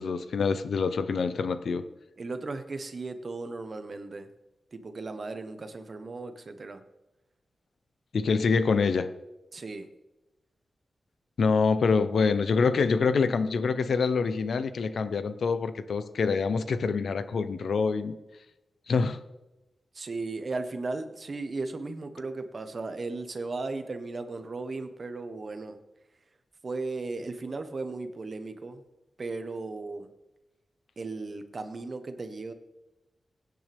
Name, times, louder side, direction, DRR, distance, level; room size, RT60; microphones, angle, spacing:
voice 1, 0.0-1.8 8.1-9.1 11.4-18.2 18.9-19.2, left 5 dB, 70° left, 11 dB, 0.9 m, -26 dB
voice 2, 2.2-4.3 4.7-6.8 9.5-9.9 19.9-25.8 26.6-28.8 29.2-30.1 31.0-32.5, right 3 dB, 40° right, 8 dB, 1.2 m, -36 dB
23.0 x 9.4 x 3.6 m, 1.0 s
wide cardioid pair, 135°, 0 cm